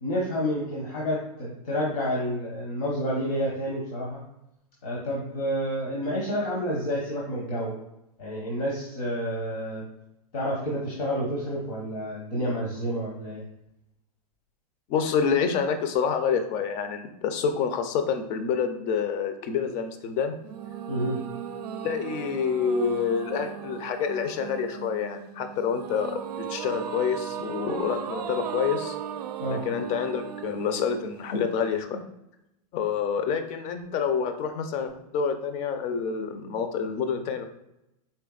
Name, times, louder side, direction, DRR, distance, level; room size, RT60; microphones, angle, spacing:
voice 1, 0.0-4.2 4.8-7.7 8.2-9.8 10.3-13.4 20.9-21.2 29.4-29.6, equal, 70° left, -3 dB, 1.1 m, -29 dB
voice 2, 14.9-20.3 21.8-26.2 26.5-29.0 29.5-32.0 32.7-37.4, left 6 dB, 35° left, 8 dB, 0.5 m, -27 dB
sound 1, 20.4-31.8, right 9 dB, 90° right, 0.4 m, -37 dB
4.3 x 3.4 x 2.3 m, 0.86 s
hypercardioid pair, 120°, 20 cm